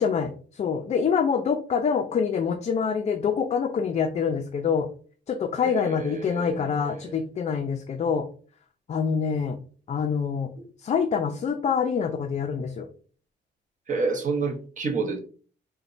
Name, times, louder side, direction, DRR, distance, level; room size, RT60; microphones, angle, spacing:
voice 1, 0.0-4.9 5.3-8.3 8.9-9.6 9.9-10.5 10.8-12.9, left 6 dB, 35° left, 6 dB, 0.3 m, -26 dB
voice 2, 5.6-7.2 13.9-15.2, right 4 dB, 40° right, 4 dB, 0.8 m, -29 dB
4.0 x 2.1 x 2.5 m, 0.41 s
cardioid pair, 90°, 20 cm